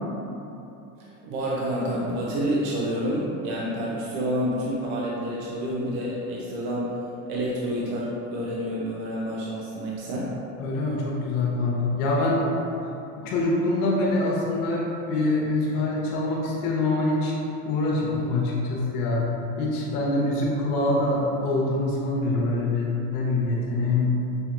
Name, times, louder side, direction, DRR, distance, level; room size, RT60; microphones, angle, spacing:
voice 1, 1.0-6.9 7.3-10.3, equal, 55° right, -5 dB, 0.8 m, -28 dB
voice 2, 10.6-12.5 13.1-17.4 17.6-24.2, left 2 dB, 80° left, -4 dB, 1.1 m, -25 dB
6.1 x 2.9 x 2.5 m, 2.9 s
supercardioid pair, 120°, 45 cm